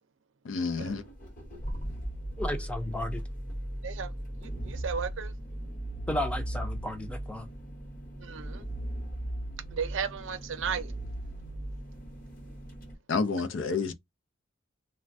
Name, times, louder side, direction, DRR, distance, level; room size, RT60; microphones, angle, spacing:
voice 1, 0.4-1.0 13.1-13.9, left 4 dB, 85° left, 0.5 m, -29 dB
sound 1, 0.8-12.9, right 1 dB, 45° left, 0.9 m, -38 dB
voice 2, 2.4-3.2 6.1-7.5, left 1 dB, 5° left, 0.5 m, -33 dB
voice 3, 4.4-5.3 8.2-8.6 9.7-10.9, right 6 dB, 80° right, 0.5 m, -34 dB
3.2 x 2.1 x 2.6 m
head